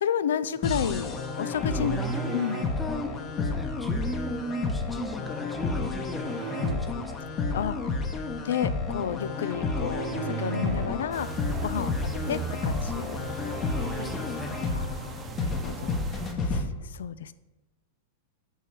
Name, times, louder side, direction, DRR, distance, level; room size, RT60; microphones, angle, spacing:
voice 1, 0.0-2.0 2.3-2.6 7.5-7.8 8.4-11.3 11.6-11.9 12.3-13.1 14.7-16.0 16.5-16.6 16.9-17.3, left 8 dB, 80° left, 15 dB, 0.3 m, -31 dB
sound 1, 0.6-16.6, left 4 dB, 35° left, 1.0 m, -31 dB
sound 2, 1.4-2.8 3.9-4.7 6.2-6.8 9.7-11.1 11.4-11.9 12.2-12.6 13.2-13.3 13.6-14.4, right 10 dB, 45° right, 0.4 m, -37 dB
voice 2, 1.9-2.4 2.8-7.1 12.0-12.2 14.0-14.5, equal, 5° left, 5 dB, 0.9 m, -37 dB
sound 3, 11.1-16.3, right 3 dB, 25° right, 0.9 m, -39 dB
7.8 x 3.1 x 5.9 m, 1.1 s
hypercardioid pair, 110°, 0 cm